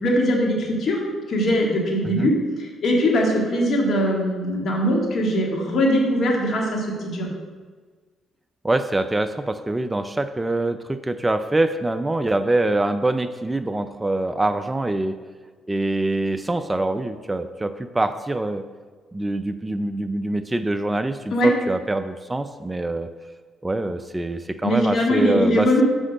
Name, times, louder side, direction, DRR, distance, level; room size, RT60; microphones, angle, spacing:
voice 1, 0.0-1.0 1.3-2.3 2.6-7.3 21.3-21.5 24.6-25.8, equal, 60° left, -1 dB, 2.0 m, -21 dB
voice 2, 8.6-15.2 15.7-18.7 19.1-23.1 23.6-25.7, right 2 dB, 15° right, 10 dB, 0.4 m, -24 dB
6.2 x 5.3 x 6.5 m, 1.5 s
cardioid pair, 90°, 0 cm